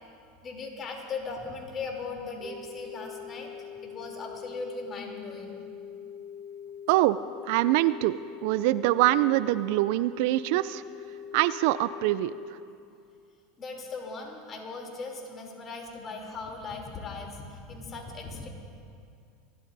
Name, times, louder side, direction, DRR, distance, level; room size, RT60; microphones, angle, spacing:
voice 1, 0.4-3.5 3.8-5.6 13.6-18.5, left 4 dB, 35° left, 0 dB, 3.1 m, -38 dB
sound 1, 2.4-12.4, left 7 dB, 50° right, 2.1 m, -43 dB
voice 2, 7.5-8.1 8.4-10.8 11.3-12.3, right 17 dB, 65° right, 16 dB, 0.3 m, -24 dB
27.0 x 12.5 x 2.7 m, 2.4 s
hypercardioid pair, 85°, 0 cm